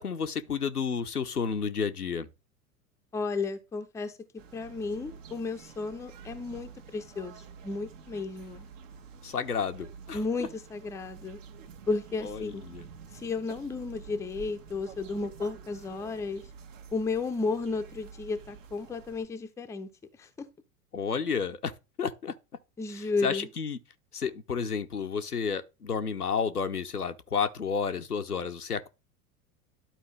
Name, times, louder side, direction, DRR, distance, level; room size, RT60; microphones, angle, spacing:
voice 1, 0.0-2.3 9.2-10.2 12.2-12.9 20.9-21.7 22.0-22.3 22.9-23.8 24.1-28.9, left 6 dB, 85° left, 0.8 m, -31 dB
voice 2, 3.1-4.1 4.5-8.6 10.1-11.4 11.9-12.6 13.2-16.4 16.9-19.9 20.2-20.5 22.8-23.5, left 4 dB, 5° left, 0.6 m, -33 dB
sound 1, 4.4-19.3, right 6 dB, 55° right, 1.3 m, -49 dB
11.5 x 4.5 x 3.2 m
figure-of-eight pair, 85°, 45 cm